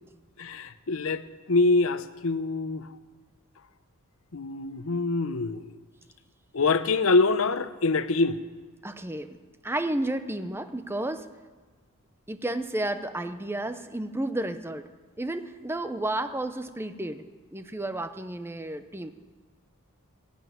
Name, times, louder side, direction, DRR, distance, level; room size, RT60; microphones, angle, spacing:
voice 1, 0.4-2.9 4.3-5.7 6.5-8.4, left 3 dB, 65° left, 0.8 m, -25 dB
voice 2, 8.8-9.4 9.6-11.3 12.3-14.9 15.2-17.2 17.5-19.1, right 1 dB, 10° right, 0.6 m, -32 dB
16.0 x 9.4 x 9.4 m
head